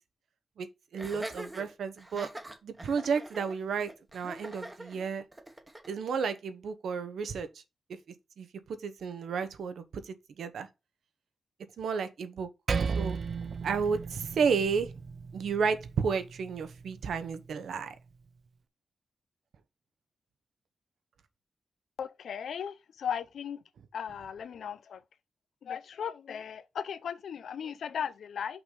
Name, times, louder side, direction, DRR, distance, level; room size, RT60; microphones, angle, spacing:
voice 1, 0.9-2.3 2.6-5.2 5.9-7.5 8.4-8.5 8.8-10.7 11.8-12.5 12.9-13.2 13.6-14.9 15.3-17.9, right 5 dB, 80° right, 1.0 m, -32 dB
Laughter, 1.0-5.9, right 1 dB, 15° right, 1.1 m, -44 dB
Percussion, 12.7-17.5, right 5 dB, 45° right, 0.5 m, -36 dB
voice 2, 22.0-23.6 23.9-25.0 25.6-28.6, left 8 dB, 80° left, 0.6 m, -37 dB
5.9 x 3.9 x 5.1 m
wide cardioid pair, 150°, 0 cm